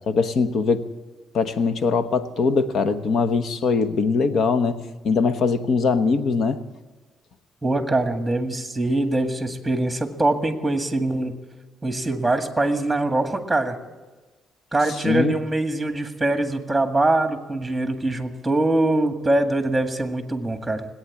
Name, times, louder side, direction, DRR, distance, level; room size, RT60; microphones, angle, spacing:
voice 1, 0.1-0.9 1.3-6.6 15.0-15.3, left 4 dB, 65° left, 11 dB, 1.1 m, -21 dB
voice 2, 7.6-11.4 11.8-13.8 14.7-20.9, right 2 dB, 10° right, 7 dB, 1.9 m, -23 dB
19.0 x 8.9 x 8.5 m, 1.2 s
cardioid pair, 90°, 0 cm